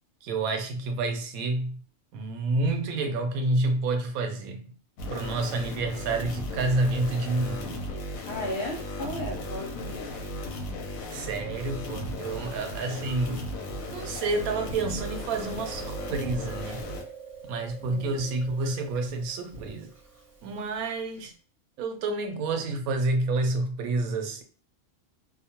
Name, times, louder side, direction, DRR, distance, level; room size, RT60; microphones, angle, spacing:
voice 1, 0.2-1.8 2.1-4.8 5.1-7.8 11.1-13.5 13.9-16.8 17.5-19.9 20.4-21.3 21.8-24.4, right 2 dB, 90° right, 1.0 m, -29 dB
sound 1, 5.0-17.0, left 1 dB, 85° left, 1.0 m, -36 dB
voice 2, 8.3-10.2 17.8-18.3, equal, 60° left, 0.8 m, -35 dB
Chewing mastication, 12.2-21.2, right 5 dB, 25° right, 1.0 m, -46 dB
2.5 x 2.2 x 2.8 m
omnidirectional pair, 1.5 m